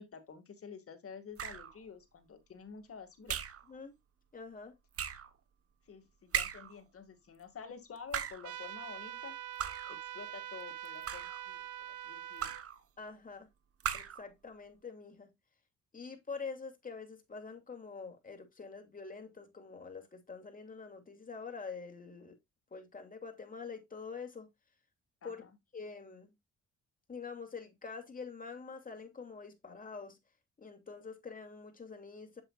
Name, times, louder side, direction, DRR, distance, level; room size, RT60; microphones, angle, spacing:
voice 1, 0.0-3.4 5.9-9.3 9.9-12.6 25.2-25.5, left 6 dB, 50° left, 2.2 m, -50 dB
sound 1, 1.4-1.8 3.3-3.7 4.9-5.3 6.3-6.8 8.0-8.5 9.6-10.0 10.8-11.4 12.4-12.8 13.8-14.3, right 8 dB, 50° right, 1.1 m, -37 dB
voice 2, 4.3-4.7 13.0-13.5 13.9-15.3 15.9-22.4 22.7-24.5 25.2-25.4 25.7-26.3 27.1-30.2 30.6-32.4, left 5 dB, 30° left, 2.7 m, -46 dB
sound 2, 8.4-12.6, right 12 dB, 75° right, 0.9 m, -44 dB
7.7 x 7.6 x 2.4 m
cardioid pair, 90°, 30 cm